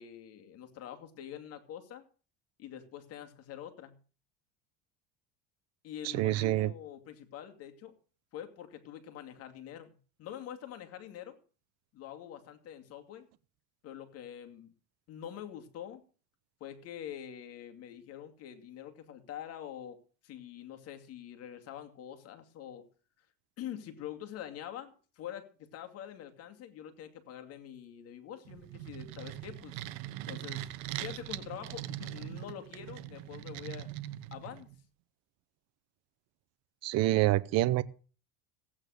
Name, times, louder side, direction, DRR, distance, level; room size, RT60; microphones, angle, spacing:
voice 1, 0.0-2.0 2.6-4.0 5.8-7.9 8.3-11.4 11.9-13.3 13.8-14.7 15.1-16.0 16.6-20.0 20.2-22.8 23.6-29.8 30.3-30.7 31.0-33.9 34.3-34.7, left 10 dB, 45° left, 2.5 m, -45 dB
voice 2, 6.0-6.7 36.8-37.8, right 16 dB, 50° right, 0.8 m, -27 dB
sound 1, 28.5-34.8, right 14 dB, 80° right, 1.1 m, -41 dB
16.0 x 9.0 x 6.5 m
cardioid pair, 145°, 33 cm